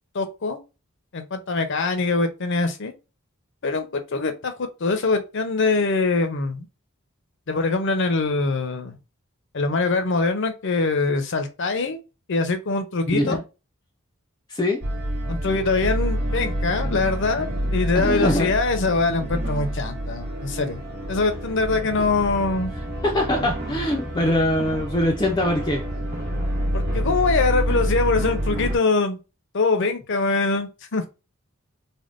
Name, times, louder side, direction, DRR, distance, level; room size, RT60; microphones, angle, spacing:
voice 1, 0.1-0.6 1.1-2.9 3.6-6.7 7.5-9.0 9.5-12.0 12.3-13.4 15.3-20.8 21.1-22.7 26.7-29.2 29.5-31.1, left 3 dB, 60° left, 0.7 m, -23 dB
voice 2, 14.5-14.8 18.0-18.5 23.0-25.8, left 1 dB, 20° left, 0.5 m, -22 dB
sound 1, 14.8-28.8, equal, 50° right, 1.0 m, -28 dB
3.5 x 2.2 x 2.5 m
head